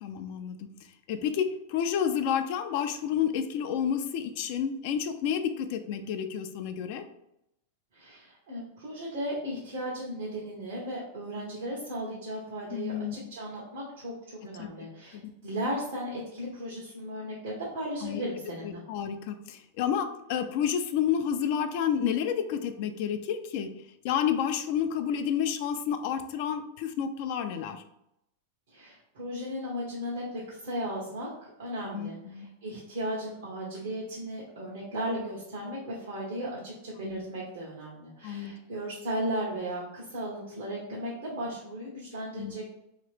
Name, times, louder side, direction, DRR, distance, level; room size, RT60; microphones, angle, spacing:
voice 1, 0.0-0.7 1.1-7.0 12.7-13.1 14.6-14.9 15.1-15.3 18.0-18.3 18.6-23.7 24.0-27.8 31.9-32.5 37.0-37.2 38.2-38.6 42.4-42.5, left 8 dB, 55° left, 7 dB, 0.4 m, -30 dB
voice 2, 7.9-18.8 28.7-42.7, equal, 75° right, -5 dB, 1.0 m, -36 dB
2.9 x 2.8 x 3.3 m, 0.81 s
hypercardioid pair, 105°, 0 cm